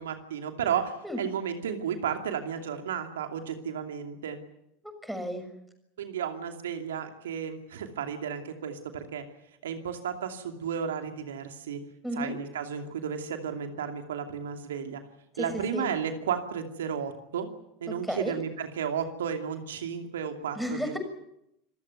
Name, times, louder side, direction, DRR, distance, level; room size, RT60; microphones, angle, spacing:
voice 1, 0.0-4.4 6.0-9.2 9.6-11.8 12.1-15.0 15.4-17.5 17.8-20.8, right 7 dB, 75° right, 6 dB, 2.6 m, -33 dB
voice 2, 4.8-5.5 12.0-12.3 15.3-15.9 17.9-18.4 20.5-21.0, equal, ahead, 8 dB, 6.6 m, -33 dB
27.0 x 15.5 x 9.5 m, 0.81 s
hypercardioid pair, 80°, 0 cm